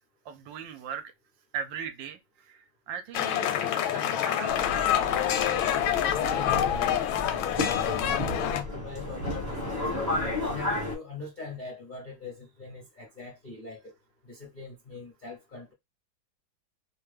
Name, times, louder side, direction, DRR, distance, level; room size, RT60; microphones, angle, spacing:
voice 1, 0.3-1.0 1.5-2.2 2.5-4.6 7.5-7.6, right 7 dB, 75° right, 1.2 m, -39 dB
sound 1, 3.1-8.6, left 10 dB, 85° left, 1.4 m, -27 dB
Subway metro underground, 4.5-11.0, left 1 dB, 15° right, 0.7 m, -33 dB
voice 2, 6.0-7.0 8.1-10.1 10.5-13.9 14.3-15.7, left 4 dB, 45° left, 0.6 m, -41 dB
3.1 x 2.2 x 3.2 m
omnidirectional pair, 2.2 m